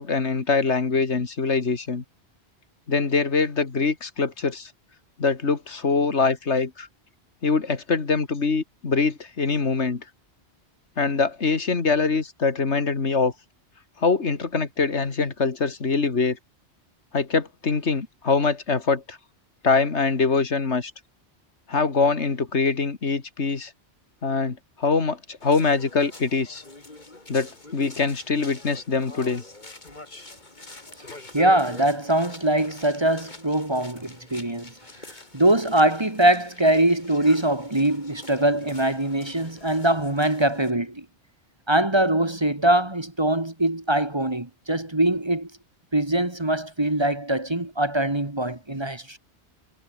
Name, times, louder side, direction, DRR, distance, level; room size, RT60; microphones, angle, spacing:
voice 1, 0.0-2.0 2.9-4.7 5.2-6.9 7.4-10.0 11.0-13.3 14.0-16.4 17.1-19.2 19.6-20.9 21.7-23.7 24.2-26.6 27.3-29.4, left 4 dB, 85° left, 2.4 m, -23 dB
sound 1, 25.4-40.7, left 2 dB, 40° left, 3.2 m, -46 dB
voice 2, 31.3-34.7 35.3-41.1 41.7-45.5 45.9-49.2, right 1 dB, 25° right, 1.9 m, -22 dB
omnidirectional pair, 1.1 m